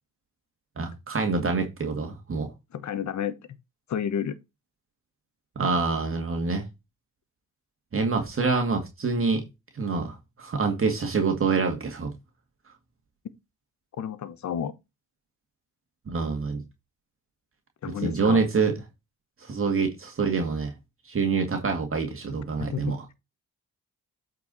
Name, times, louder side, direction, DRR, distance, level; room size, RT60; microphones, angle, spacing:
voice 1, 0.8-2.5 5.6-6.6 7.9-9.4 9.7-12.1 16.1-16.6 18.0-18.7 19.4-20.7 21.1-23.0, right 4 dB, 40° right, 2.1 m, -26 dB
voice 2, 2.7-3.4 3.9-4.4 14.0-14.7 17.8-18.4 22.6-23.1, left 8 dB, 60° left, 1.2 m, -31 dB
8.4 x 4.7 x 4.1 m
cardioid pair, 75°, 32 cm